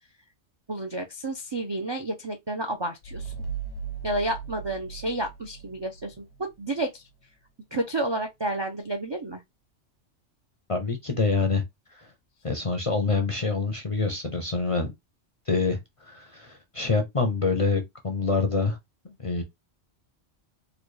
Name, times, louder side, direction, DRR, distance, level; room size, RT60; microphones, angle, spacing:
voice 1, 0.7-3.3 4.0-7.0 7.7-9.4, right 1 dB, 45° right, 0.3 m, -30 dB
sound 1, 3.0-6.4, right 7 dB, 75° left, 0.9 m, -37 dB
voice 2, 10.7-11.6 12.4-14.9 15.5-18.8 19.0-19.4, left 4 dB, 40° left, 0.5 m, -26 dB
3.9 x 2.2 x 3.2 m
omnidirectional pair, 1.3 m